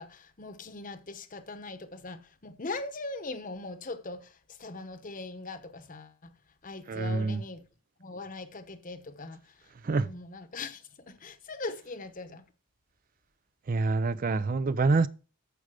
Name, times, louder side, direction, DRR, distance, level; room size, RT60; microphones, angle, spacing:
voice 1, 0.0-6.3 6.6-7.6 8.0-12.4, left 3 dB, 40° left, 1.0 m, -41 dB
voice 2, 6.9-7.4 9.8-10.1 13.7-15.1, right 3 dB, 40° right, 0.4 m, -26 dB
14.0 x 5.1 x 4.9 m
head